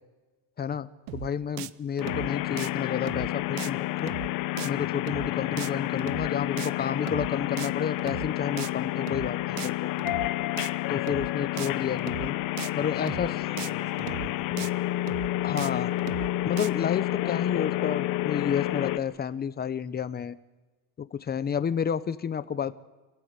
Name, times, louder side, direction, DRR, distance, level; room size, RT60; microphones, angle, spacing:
voice 1, 0.6-4.1 4.6-9.9 10.9-12.4 12.8-13.3 15.4-15.9 16.4-20.4 21.0-22.7, left 7 dB, 25° left, 14 dB, 0.9 m, -31 dB
sound 1, 1.1-1.3 1.6-1.7 2.0-2.3 2.6-2.7 3.1-3.3 3.6-3.7 4.0-4.3 4.6-4.7 5.1-5.3 5.6-5.7 6.0-6.3 6.6-6.7 7.1-7.3 7.6-7.7 8.0-8.3 8.6-8.7 9.1-9.3 9.6-9.7 10.0-10.3 10.6-10.7 11.1-11.3 11.6-11.7 12.0-12.3 12.6-12.7 13.1-13.3 13.6-13.7 14.0-14.3 14.6-14.7 15.1-15.3 15.6-15.7 16.0-16.3 16.6-16.7, right 16 dB, 70° right, 0.9 m, -37 dB
sound 2, 2.0-19.0, left 16 dB, 60° left, 1.1 m, -30 dB
voice 2, 12.6-14.7, right 1 dB, 15° right, 1 dB, 4.6 m, -47 dB
27.0 x 16.0 x 8.2 m, 1.2 s
cardioid pair, 125°, 38 cm